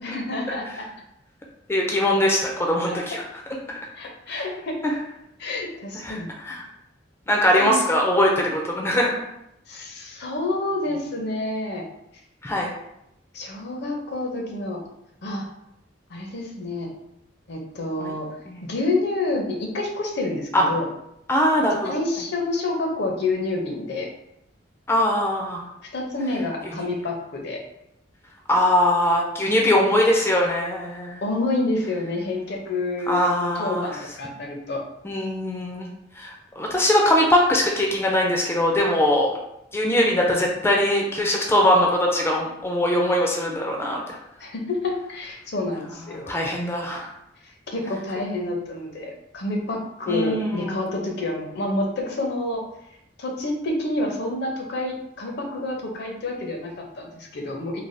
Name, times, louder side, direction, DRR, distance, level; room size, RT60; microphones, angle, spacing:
voice 1, 0.0-0.9 2.9-3.0 4.0-4.8 5.4-6.3 7.6-7.9 9.7-11.8 13.3-14.8 15.2-15.4 16.1-16.9 17.5-18.3 18.6-20.9 21.8-24.1 25.9-27.6 31.2-34.8 44.4-46.4 47.7-52.6 53.2-57.8, left 2 dB, 60° left, 2 dB, 0.5 m, -28 dB
voice 2, 1.7-3.2 4.3-4.4 4.8-4.9 6.0-6.2 6.4-6.6 7.3-9.2 12.4-12.7 18.0-18.1 20.5-20.7 21.3-21.9 24.9-25.6 26.7-26.9 28.5-31.2 33.1-33.9 35.0-35.9 36.2-39.3 39.7-44.0 46.3-47.1 50.1-50.8, left 1 dB, 15° left, -1 dB, 0.3 m, -21 dB
3.2 x 2.2 x 2.5 m, 0.82 s
head